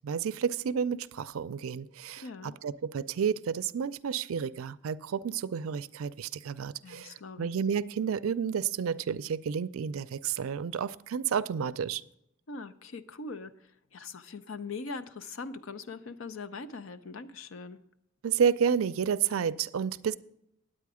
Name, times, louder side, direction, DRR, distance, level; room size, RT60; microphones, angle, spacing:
voice 1, 0.0-12.0 18.2-20.2, right 7 dB, 80° right, 0.4 m, -31 dB
voice 2, 2.2-2.6 6.8-7.5 12.5-17.8, left 4 dB, 65° left, 0.6 m, -41 dB
9.3 x 8.8 x 4.9 m
head